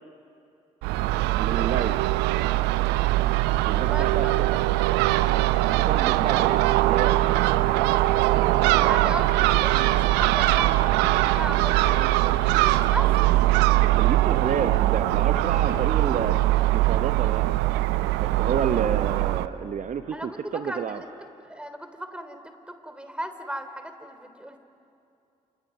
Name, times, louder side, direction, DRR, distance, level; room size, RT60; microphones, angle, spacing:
Crow / Gull seagull, 0.8-19.5, right 16 dB, 65° right, 0.7 m, -22 dB
voice 1, 1.4-2.0 3.7-4.3 5.9-7.7 13.8-16.4 16.7-17.5 18.2-21.0, right 7 dB, 45° right, 9 dB, 1.0 m, -30 dB
voice 2, 3.8-4.6 8.8-13.1 20.1-21.1 21.4-24.6, right 1 dB, 5° right, 8 dB, 3.1 m, -37 dB
29.5 x 28.5 x 6.2 m, 2.7 s
figure-of-eight pair, 40°, 18 cm